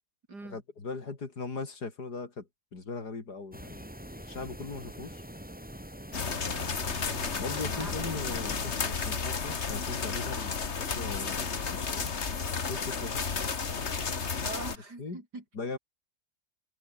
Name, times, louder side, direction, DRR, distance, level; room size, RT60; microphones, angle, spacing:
voice 1, 0.4-3.8 4.3-5.2 7.4-12.1 12.7-13.3 15.0-15.2 15.5-15.8, left 4 dB, 75° left, 4.0 m, -39 dB
sound 1, 3.5-8.8, equal, 5° right, 3.8 m, -44 dB
sound 2, 6.1-14.8, left 5 dB, 45° left, 1.9 m, -32 dB
voice 2, 6.1-6.7 7.8-7.9 14.4-15.4, right 2 dB, 85° right, 6.7 m, -43 dB
omnidirectional pair, 1.7 m